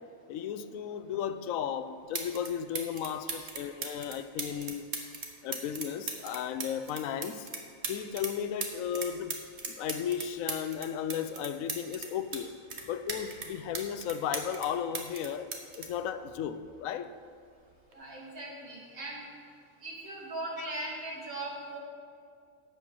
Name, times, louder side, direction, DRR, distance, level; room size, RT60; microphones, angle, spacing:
voice 1, 0.3-4.8 5.4-7.5 7.9-9.4 9.7-12.5 12.9-15.5 15.8-17.1 20.6-20.7, left 9 dB, 80° left, 12 dB, 1.0 m, -35 dB
sound 1, 1.7-1.8 2.1-2.5 2.8-8.3 8.6-12.4 12.7-14.7 14.9-16.8 17.7-17.9, right 4 dB, 55° right, 1.3 m, -38 dB
voice 2, 17.9-19.2 19.8-21.8, right 2 dB, 85° right, -3 dB, 2.6 m, -39 dB
11.5 x 8.2 x 4.7 m, 2.3 s
omnidirectional pair, 1.4 m